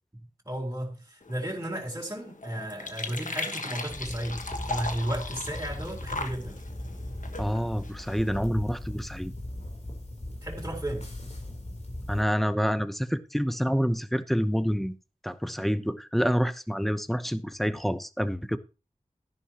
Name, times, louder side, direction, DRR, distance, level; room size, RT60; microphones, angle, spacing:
voice 1, 0.5-6.6 10.4-11.1, right 1 dB, 20° right, 3.8 m, -34 dB
sound 1, 1.2-8.4, left 2 dB, 70° left, 1.5 m, -38 dB
sound 2, 3.9-12.2, left 1 dB, 55° left, 3.6 m, -39 dB
voice 2, 7.4-9.3 12.1-15.0 15.2-18.6, equal, ahead, 0.9 m, -27 dB
13.0 x 11.0 x 3.0 m
wide cardioid pair, 40°, 14 cm